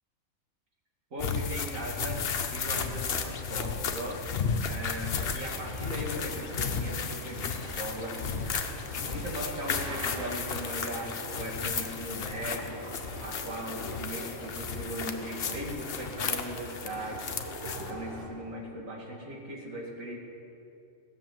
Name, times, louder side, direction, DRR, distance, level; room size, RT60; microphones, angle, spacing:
voice 1, 1.1-2.2 2.5-4.2 4.7-8.2 9.1-12.8 13.2-17.3 17.8-20.2, equal, 80° right, -2 dB, 2.6 m, -38 dB
sound 1, 1.2-17.9, left 5 dB, 55° left, 0.9 m, -34 dB
sound 2, 5.5-18.2, right 1 dB, 45° right, 2.1 m, -43 dB
18.0 x 6.7 x 7.6 m, 2.6 s
omnidirectional pair, 1.4 m